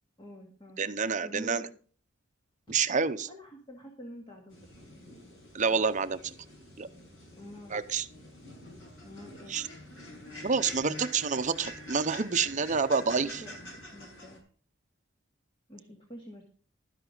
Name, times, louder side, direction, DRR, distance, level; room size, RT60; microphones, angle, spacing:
voice 1, 0.2-0.8 1.2-1.7 3.3-4.8 7.4-7.8 9.0-9.6 13.0-14.5 15.7-16.4, equal, 25° left, 0 dB, 2.0 m, -47 dB
voice 2, 0.8-1.6 2.7-3.3 5.5-6.3 6.8-6.9 7.7-8.1 9.5-9.7 10.4-13.4, right 5 dB, 40° right, 11 dB, 0.6 m, -28 dB
sound 1, 4.5-14.4, left 1 dB, 75° left, 5.9 m, -47 dB
12.5 x 11.0 x 3.9 m, 0.42 s
head